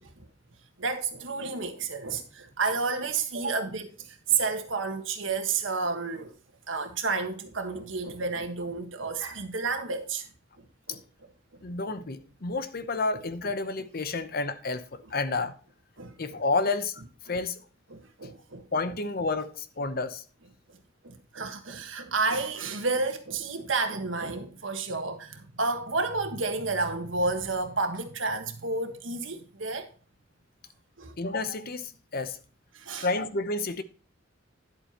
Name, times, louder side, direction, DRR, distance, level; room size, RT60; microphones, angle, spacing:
voice 1, 0.8-6.3 6.7-10.3 10.6-11.0 16.0-16.1 17.3-17.4 17.9-18.9 20.7-20.8 21.0-29.9 31.0-31.2 32.7-33.1, right 4 dB, 85° right, 1.5 m, -31 dB
voice 2, 11.6-15.5 16.2-17.0 17.3-17.6 18.7-20.2 31.2-32.4 33.0-33.8, left 3 dB, 50° left, 0.8 m, -30 dB
10.5 x 8.0 x 3.0 m
head